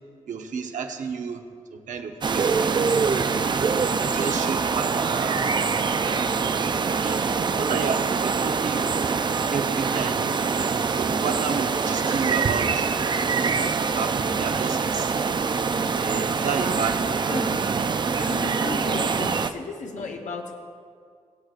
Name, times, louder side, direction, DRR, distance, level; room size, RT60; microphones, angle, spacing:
voice 1, 0.3-3.0 3.6-5.6 5.9-7.2 7.6-8.9 9.5-10.3 11.0-12.9 13.3-15.4 16.0-17.2, right 5 dB, 80° right, 4 dB, 0.9 m, -32 dB
sound 1, 2.2-19.5, right 5 dB, 35° right, 0.4 m, -24 dB
voice 2, 17.0-17.6 18.2-20.5, left 4 dB, 75° left, 2 dB, 0.8 m, -35 dB
20.5 x 7.8 x 2.4 m, 2.2 s
wide cardioid pair, 105°, 13 cm